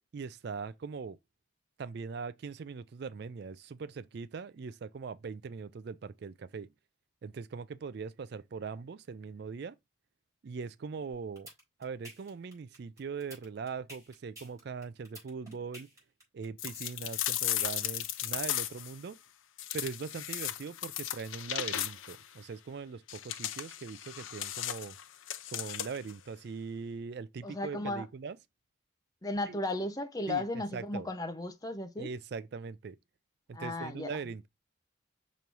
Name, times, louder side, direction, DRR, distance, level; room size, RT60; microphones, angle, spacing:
voice 1, 0.1-1.2 1.8-6.7 7.2-9.8 10.4-11.5 11.8-15.9 16.3-19.2 19.7-25.0 25.5-28.4 29.5-29.6 30.3-30.5 30.7-31.1 32.0-33.0 33.5-34.5, right 5 dB, 55° right, 0.3 m, -41 dB
sound 1, 11.1-18.4, right 1 dB, 15° right, 4.1 m, -50 dB
sound 2, 16.6-19.0 19.6-22.2 23.1-26.1, left 12 dB, 75° left, 0.5 m, -36 dB
voice 2, 27.4-28.1 29.2-32.1 33.5-34.2, left 2 dB, 20° left, 0.6 m, -35 dB
5.7 x 3.1 x 5.2 m
head